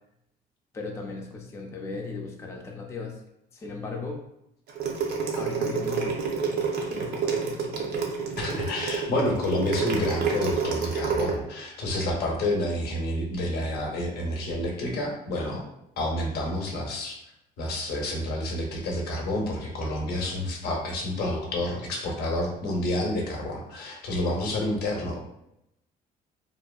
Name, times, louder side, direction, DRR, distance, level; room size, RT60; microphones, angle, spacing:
voice 1, 0.7-3.2 3.5-4.2 5.3-6.2 6.9-7.7, left 4 dB, 15° left, 0 dB, 0.4 m, -37 dB
sound 1, 4.7-11.3, right 5 dB, 70° right, 0.6 m, -28 dB
voice 2, 8.4-15.6 16.0-17.2 17.6-25.2, left 1 dB, 70° left, 0 dB, 0.7 m, -29 dB
2.6 x 2.1 x 2.3 m, 0.83 s
cardioid pair, 110°, 17 cm